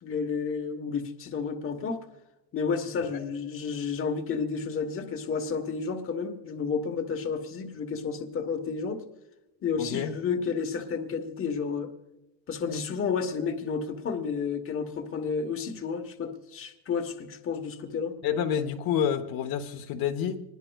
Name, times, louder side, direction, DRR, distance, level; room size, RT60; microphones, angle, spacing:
voice 1, 0.0-2.0 2.5-9.1 9.6-11.9 12.5-18.2, left 5 dB, 30° left, 6 dB, 1.1 m, -31 dB
voice 2, 9.8-10.1 18.2-20.4, left 8 dB, 55° left, 5 dB, 1.1 m, -28 dB
25.5 x 20.0 x 2.3 m, 0.98 s
cardioid pair, 175°, 42 cm